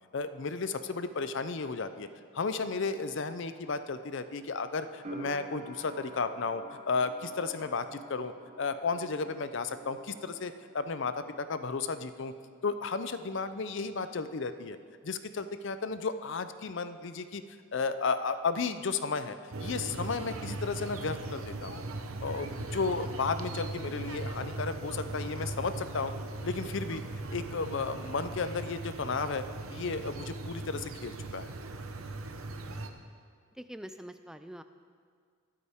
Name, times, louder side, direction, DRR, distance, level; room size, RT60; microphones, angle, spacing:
voice 1, 0.1-2.1 2.3-12.3 12.6-14.8 15.0-17.4 17.7-19.4 19.6-21.8 22.2-26.1 26.4-27.0 27.3-29.4 29.7-31.5, left 4 dB, 55° left, 11 dB, 0.5 m, -33 dB
sound 1, 5.0-11.8 12.1-13.0, right 1 dB, 35° right, 1.1 m, -48 dB
sound 2, 19.5-32.9, right 2 dB, 75° right, 0.8 m, -39 dB
voice 2, 32.5-33.0 33.5-34.6, equal, 5° right, 10 dB, 0.3 m, -47 dB
21.0 x 8.5 x 3.6 m, 2.1 s
head